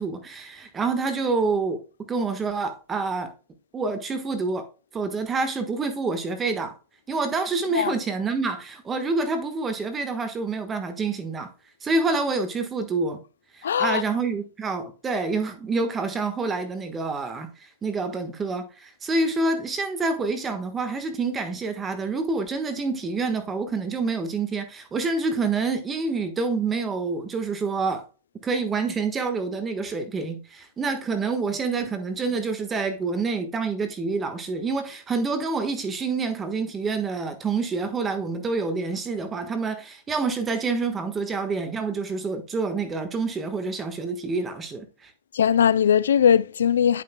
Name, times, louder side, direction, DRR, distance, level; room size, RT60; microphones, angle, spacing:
voice 1, 0.0-1.8 2.1-3.3 3.7-4.7 4.9-6.7 7.1-11.5 11.8-13.2 13.5-28.0 28.4-45.1, right 4 dB, 20° right, 1.4 m, -27 dB
voice 2, 13.6-14.0 45.3-47.0, left 8 dB, 80° left, 0.4 m, -20 dB
10.5 x 5.7 x 2.2 m
hypercardioid pair, 115°, 0 cm